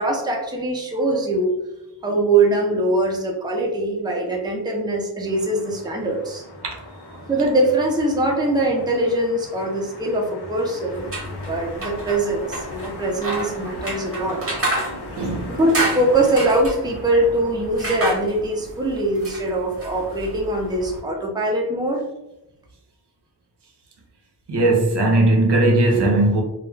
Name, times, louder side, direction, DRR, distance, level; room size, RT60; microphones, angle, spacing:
voice 1, 0.0-1.5 2.0-6.4 7.3-14.4 15.6-22.0, right 2 dB, 10° right, 0.5 m, -22 dB
sound 1, 5.3-16.5, left 2 dB, 70° left, 0.6 m, -38 dB
voice 2, 6.6-7.2 15.1-15.6 24.5-26.4, right 2 dB, 75° right, 0.6 m, -19 dB
sound 2, 10.9-21.0, right 2 dB, 35° right, 0.8 m, -30 dB
2.2 x 2.1 x 3.1 m
wide cardioid pair, 100°, 41 cm